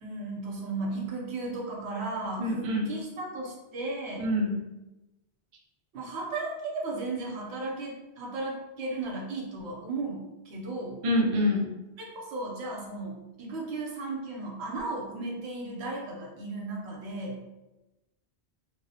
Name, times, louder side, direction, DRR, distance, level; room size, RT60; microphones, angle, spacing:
voice 1, 0.0-4.3 5.9-6.5 6.8-11.0 12.1-17.4, right 2 dB, 75° right, -1 dB, 0.9 m, -35 dB
voice 2, 2.4-2.9 4.2-4.5 11.0-11.7, left 1 dB, 50° right, -2 dB, 0.4 m, -25 dB
2.5 x 2.0 x 2.7 m, 1.0 s
omnidirectional pair, 1.1 m